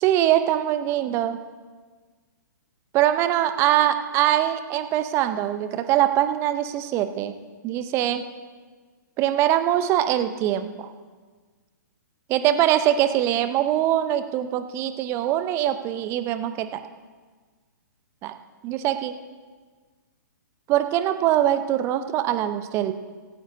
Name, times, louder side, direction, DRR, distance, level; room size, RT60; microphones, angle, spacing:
voice 1, 0.0-1.4 2.9-7.3 7.6-8.2 9.2-10.9 12.3-16.8 18.2-18.3 18.6-19.1 20.7-22.9, right 12 dB, 25° right, 10 dB, 0.8 m, -23 dB
17.0 x 16.5 x 2.8 m, 1.4 s
figure-of-eight pair, 120°, 10 cm